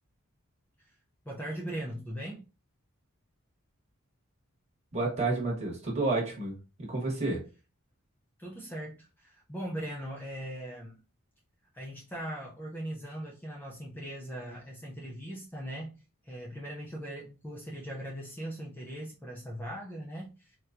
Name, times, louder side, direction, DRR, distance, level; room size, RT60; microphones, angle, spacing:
voice 1, 1.3-2.4 8.4-11.0 11.7-20.6, right 1 dB, 10° left, 0.4 m, -40 dB
voice 2, 4.9-7.5, right 2 dB, 30° right, 1.1 m, -30 dB
4.3 x 2.2 x 2.4 m
head